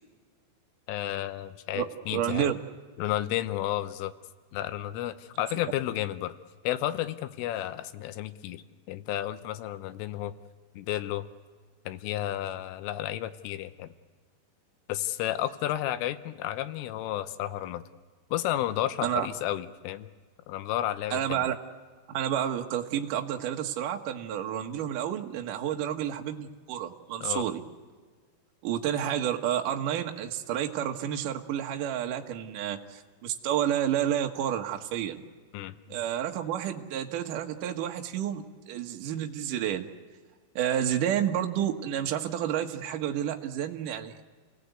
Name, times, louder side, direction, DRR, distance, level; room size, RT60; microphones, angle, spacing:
voice 1, 0.9-2.5 3.0-4.1 4.5-6.4 6.6-10.4 10.8-11.3 11.9-13.9 14.9-17.8 18.3-20.1 20.5-21.5 27.2-27.4 35.5-35.7, left 13 dB, 80° left, 11 dB, 3.3 m, -32 dB
voice 2, 1.7-2.6 19.0-19.3 21.1-21.5 22.1-27.6 28.6-35.2 35.9-39.9 40.6-44.1, right 10 dB, 80° right, 4 dB, 1.8 m, -30 dB
30.0 x 18.0 x 8.2 m, 1.5 s
omnidirectional pair, 5.8 m